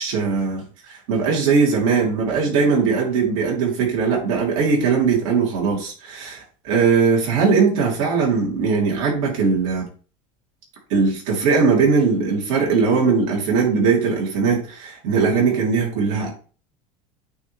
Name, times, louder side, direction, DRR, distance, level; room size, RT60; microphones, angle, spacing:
voice 1, 0.0-9.9 10.9-16.3, right 5 dB, 70° right, -2 dB, 3.0 m, -20 dB
8.8 x 3.2 x 3.5 m, 0.39 s
supercardioid pair, 130°, 17 cm